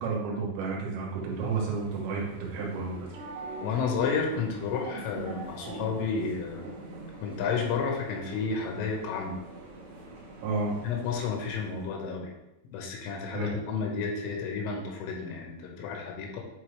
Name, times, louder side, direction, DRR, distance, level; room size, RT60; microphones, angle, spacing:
voice 1, 0.0-3.1 10.4-10.7 13.3-13.5, right 4 dB, 85° right, -2 dB, 3.9 m, -31 dB
sound 1, 1.0-11.9, right 2 dB, 70° right, 3.7 m, -44 dB
voice 2, 3.6-6.7 7.2-9.4 10.8-12.3 12.7-16.4, left 5 dB, 85° left, 0 dB, 3.8 m, -31 dB
9.4 x 4.0 x 3.3 m, 0.93 s
omnidirectional pair, 5.6 m